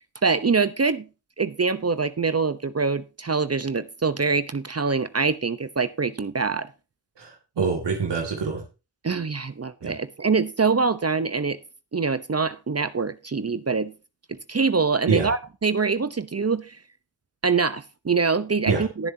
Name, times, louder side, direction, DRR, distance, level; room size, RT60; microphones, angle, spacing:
voice 1, 0.2-1.1 1.4-6.7 9.0-11.6 11.9-13.9 14.3-16.8 17.4-19.1, right 4 dB, 35° right, 0.9 m, -24 dB
voice 2, 7.2-8.6 9.8-9.9 15.1-15.3 18.7-18.8, right 5 dB, 90° right, 2.3 m, -25 dB
19.0 x 7.2 x 2.8 m
cardioid pair, 45°, 41 cm